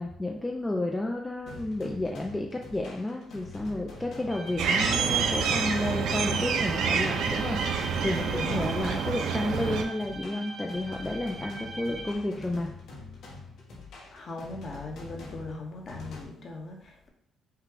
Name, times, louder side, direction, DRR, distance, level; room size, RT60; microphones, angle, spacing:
voice 1, 0.0-12.7, left 1 dB, 15° left, 1 dB, 0.4 m, -31 dB
sound 1, 1.5-16.2, left 3 dB, 75° left, 1.2 m, -45 dB
sound 2, 4.3-12.1, right 2 dB, 25° right, 0.7 m, -41 dB
sound 3, 4.6-9.8, right 6 dB, 80° right, 0.5 m, -28 dB
voice 2, 8.3-8.7 14.1-17.1, left 2 dB, 40° left, 2 dB, 0.9 m, -39 dB
5.6 x 2.3 x 3.8 m, 0.68 s
cardioid pair, 120°, 0 cm